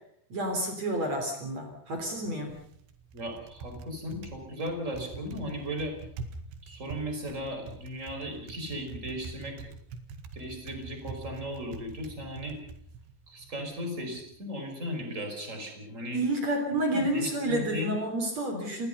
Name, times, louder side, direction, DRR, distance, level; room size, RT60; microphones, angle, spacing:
voice 1, 0.3-2.6 16.1-18.9, right 1 dB, 40° right, 4 dB, 4.4 m, -30 dB
Typing, 1.9-14.3, right 3 dB, 80° right, 4.1 m, -45 dB
voice 2, 3.1-5.9 6.6-9.6 10.3-12.6 13.3-16.2 16.9-17.9, equal, 15° right, 4 dB, 5.3 m, -36 dB
28.0 x 21.0 x 5.5 m, 0.65 s
omnidirectional pair, 4.8 m